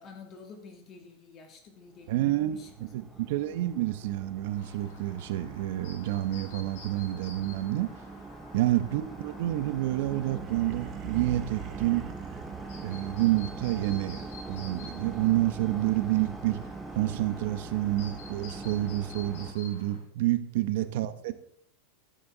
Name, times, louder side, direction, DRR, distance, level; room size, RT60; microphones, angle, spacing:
voice 1, 0.0-3.6 8.7-9.0 20.7-21.4, left 5 dB, 35° left, 2.8 m, -51 dB
sound 1, 2.0-19.5, right 3 dB, 10° right, 0.9 m, -43 dB
voice 2, 2.1-2.6 2.9-7.9 8.5-12.1 12.8-16.6 16.9-21.4, right 14 dB, 65° right, 1.0 m, -29 dB
Chirp tweet, 4.5-20.0, left 3 dB, 70° left, 4.7 m, -50 dB
sound 2, 9.3-13.5, right 11 dB, 40° right, 0.9 m, -42 dB
13.5 x 9.9 x 4.0 m
supercardioid pair, 130°, 0 cm